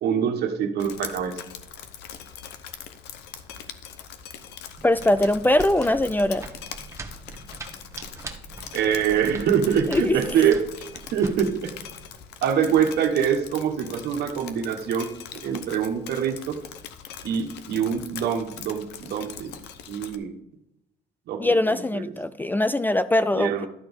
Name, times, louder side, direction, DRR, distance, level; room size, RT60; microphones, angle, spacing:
voice 1, 0.0-1.4 8.7-11.7 12.4-16.6 17.2-19.6 19.9-20.3 21.3-22.0 23.3-23.7, right 8 dB, 70° right, 5 dB, 1.5 m, -25 dB
Drip, 0.8-20.2, left 9 dB, 90° left, 0.9 m, -42 dB
voice 2, 4.8-6.5 9.9-10.2 21.4-23.6, left 1 dB, 10° left, 14 dB, 0.3 m, -21 dB
sound 1, 4.8-12.1, right 3 dB, 15° right, 1.3 m, -42 dB
12.5 x 4.3 x 7.1 m, 0.87 s
cardioid pair, 110°, 17 cm